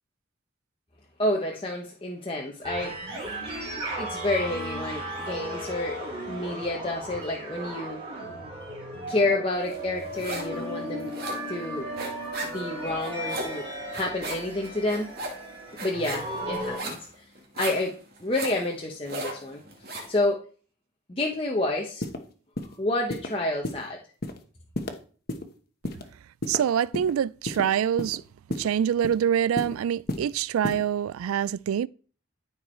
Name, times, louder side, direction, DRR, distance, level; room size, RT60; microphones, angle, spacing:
voice 1, 1.2-3.4 4.0-6.0 6.3-8.0 9.1-11.1 11.5-11.9 12.4-15.1 15.8-17.3 17.5-19.6 20.1-20.4 21.1-22.1 22.8-24.0, left 2 dB, 25° left, 0.9 m, -29 dB
sound 1, 2.6-16.8, right 1 dB, 25° right, 3.1 m, -35 dB
sound 2, 9.7-10.6 10.9-20.2, right 2 dB, 45° right, 2.4 m, -37 dB
sound 3, 22.0-22.2 22.6-22.7 23.1-23.3 23.6-23.8 24.2-24.4 24.7-24.9 25.3-25.4 25.8-26.0 26.4-27.1 27.5-27.6 28.0-28.2 28.5-28.7 29.0-29.2 29.6-29.7 30.1-30.2 30.6-30.8, left 1 dB, 45° left, 1.1 m, -31 dB
voice 2, 26.5-28.2 28.6-31.9, right 9 dB, 90° right, 0.3 m, -25 dB
14.0 x 4.7 x 4.4 m
head